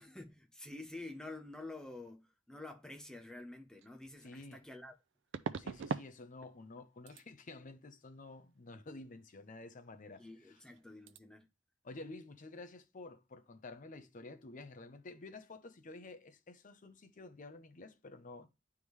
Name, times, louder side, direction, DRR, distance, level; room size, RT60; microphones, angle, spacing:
voice 1, 0.0-4.9 10.2-11.4, left 2 dB, 5° left, 0.8 m, -49 dB
sound 1, 3.8-3.9 5.3-6.1 6.4-6.8 7.1-7.3 10.2-10.3 10.6-10.8 11.1-11.2, right 5 dB, 65° right, 0.4 m, -40 dB
voice 2, 4.2-4.6 5.5-10.6 11.8-18.5, left 2 dB, 40° left, 0.6 m, -51 dB
9.7 x 3.6 x 3.1 m
head